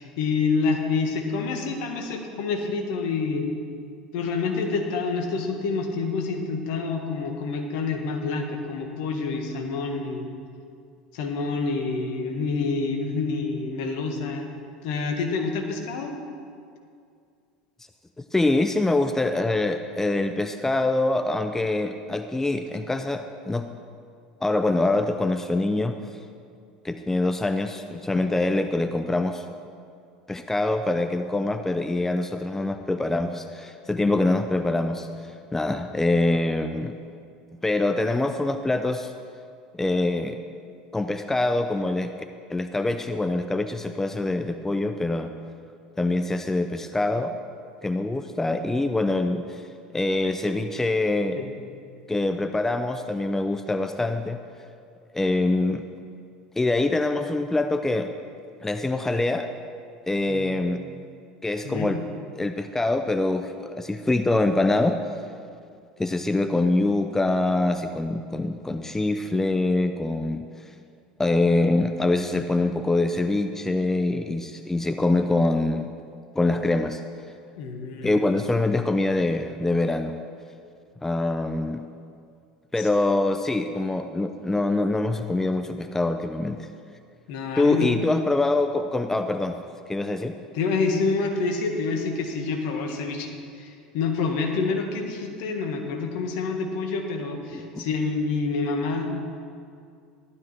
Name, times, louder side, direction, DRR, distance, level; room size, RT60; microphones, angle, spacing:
voice 1, 0.0-3.5 4.1-10.3 11.1-14.5 14.8-16.1 28.2-28.3 51.3-51.5 60.3-60.6 61.6-62.0 77.6-78.2 82.8-82.9 87.3-87.9 90.5-99.1, left 4 dB, 60° left, 3 dB, 1.9 m, -27 dB
voice 2, 18.2-23.7 24.4-26.0 26.8-29.4 30.3-35.1 35.5-37.0 37.6-39.1 39.7-40.4 40.9-42.1 42.5-45.3 46.0-47.3 47.8-49.7 49.9-51.4 52.1-54.4 55.1-55.8 56.6-58.1 58.6-59.5 60.1-60.8 61.4-62.0 62.4-65.0 66.0-70.4 71.2-75.9 76.3-77.0 78.0-80.2 81.0-81.8 82.7-86.7 87.6-89.6 89.9-90.4 97.5-97.9, left 2 dB, 10° left, 8 dB, 0.6 m, -24 dB
14.5 x 12.0 x 4.6 m, 2.3 s
hypercardioid pair, 75°, 4 cm